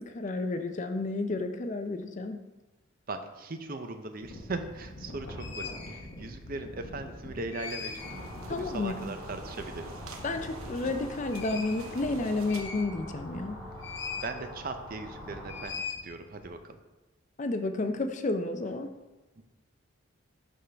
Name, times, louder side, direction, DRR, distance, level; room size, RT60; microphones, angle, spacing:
voice 1, 0.0-2.4 8.5-9.0 10.2-13.6 17.4-18.9, left 2 dB, 35° left, 7 dB, 0.4 m, -31 dB
voice 2, 3.1-10.0 13.9-14.0 14.2-16.8 19.4-19.5, right 3 dB, 45° right, 8 dB, 0.5 m, -39 dB
sound 1, 4.2-13.2 13.8-14.4 14.7-16.5, left 4 dB, 55° left, 1.1 m, -42 dB
sound 2, 7.6-12.6, right 3 dB, 85° right, 0.8 m, -48 dB
sound 3, 8.0-15.7, equal, 5° left, 2.1 m, -44 dB
11.0 x 3.7 x 3.4 m, 1.1 s
head